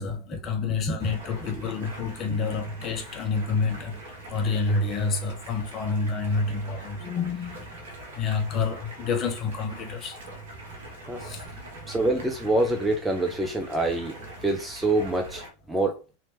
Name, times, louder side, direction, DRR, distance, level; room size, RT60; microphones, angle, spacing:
voice 1, 0.0-4.0 4.3-7.6 8.2-10.2 11.2-11.4, left 4 dB, 30° left, 0.8 m, -28 dB
Stream, 1.0-15.5, right 1 dB, 60° right, 1.1 m, -43 dB
voice 2, 11.9-14.2 14.4-16.0, right 2 dB, 5° right, 0.5 m, -26 dB
3.2 x 2.8 x 2.8 m
figure-of-eight pair, 90°, 0 cm